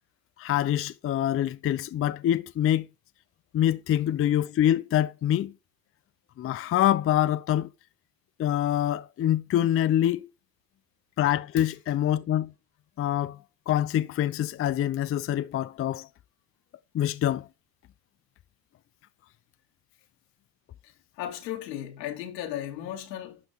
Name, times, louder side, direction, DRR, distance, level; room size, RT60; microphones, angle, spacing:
voice 1, 0.4-2.9 3.5-5.5 6.4-7.7 8.4-10.3 11.2-12.5 13.0-13.4 13.7-16.1 16.9-17.5, left 11 dB, 30° left, 0.5 m, -25 dB
voice 2, 20.8-23.4, left 11 dB, 85° left, 2.7 m, -36 dB
11.5 x 5.3 x 3.6 m
hypercardioid pair, 80°, 49 cm